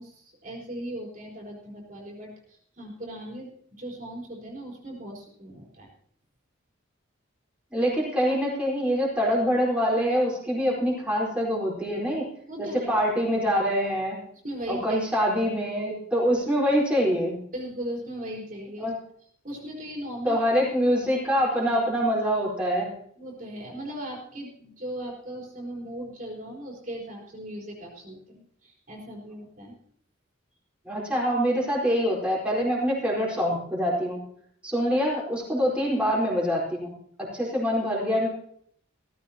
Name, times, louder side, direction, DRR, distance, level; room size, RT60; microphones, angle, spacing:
voice 1, 0.0-5.9 12.5-12.9 14.4-15.0 17.5-18.9 19.4-20.4 21.1-21.2 23.2-29.7, right 1 dB, 45° right, -1 dB, 4.2 m, -38 dB
voice 2, 7.7-12.3 12.6-14.2 14.7-17.4 18.8-19.0 20.2-22.9 30.8-34.2 34.6-38.3, equal, 5° right, -5 dB, 4.4 m, -25 dB
16.5 x 15.0 x 2.9 m, 0.63 s
head